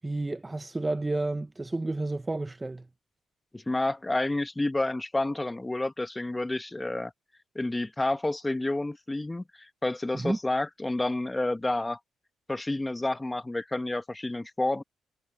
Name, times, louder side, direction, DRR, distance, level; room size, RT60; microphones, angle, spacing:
voice 1, 0.0-2.9 10.1-10.4, right 2 dB, 15° right, 0.7 m, -31 dB
voice 2, 3.5-7.1 7.5-12.0 12.5-14.8, left 2 dB, 15° left, 1.2 m, -29 dB
cardioid pair, 90°, 0 cm